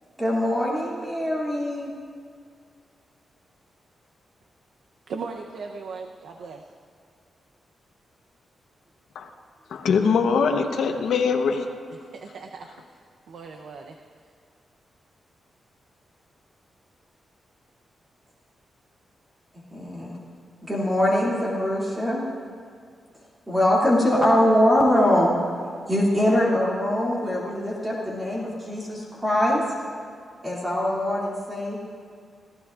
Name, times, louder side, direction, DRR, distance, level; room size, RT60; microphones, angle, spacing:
voice 1, 0.2-1.9 19.7-20.1 20.6-22.2 23.5-25.3 25.9-29.6 30.4-31.8, left 1 dB, 15° right, -6 dB, 2.5 m, -22 dB
voice 2, 5.1-6.6 12.1-12.7 13.3-14.0, right 5 dB, 85° right, 3 dB, 0.7 m, -37 dB
voice 3, 9.7-11.7, left 5 dB, 90° left, 4 dB, 1.0 m, -22 dB
29.0 x 15.5 x 2.5 m, 2.2 s
wide cardioid pair, 130°, 0 cm